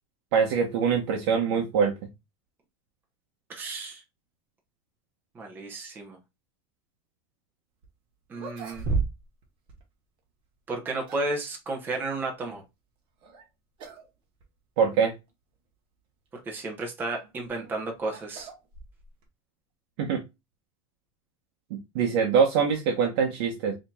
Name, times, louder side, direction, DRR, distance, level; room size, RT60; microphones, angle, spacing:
voice 1, 0.3-1.9 14.8-15.1 20.0-20.2 21.7-23.7, right 6 dB, 65° right, 0.9 m, -24 dB
voice 2, 3.5-4.0 5.3-6.2 8.3-9.0 10.7-12.6 16.5-18.5, right 2 dB, 15° right, 0.9 m, -33 dB
sound 1, 7.8-7.9 8.3-9.4 9.7-9.8 10.7-11.4 13.2-13.5 13.8-14.1 14.4-14.5 15.3-15.4 17.2-19.3, right 4 dB, 35° right, 1.2 m, -34 dB
4.9 x 2.9 x 2.3 m
supercardioid pair, 170°, 14 cm